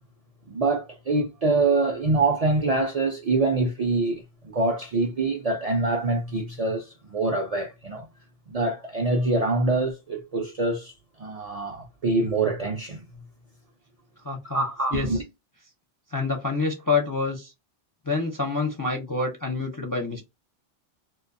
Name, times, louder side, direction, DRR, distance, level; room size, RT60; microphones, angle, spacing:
voice 1, 0.5-8.1 8.5-10.9 11.2-13.0 14.5-15.2, right 3 dB, 55° right, 0.4 m, -25 dB
voice 2, 14.2-14.6 14.9-15.2 16.1-17.5 18.1-20.2, left 3 dB, 30° left, 0.4 m, -27 dB
2.5 x 2.2 x 2.5 m
omnidirectional pair, 1.1 m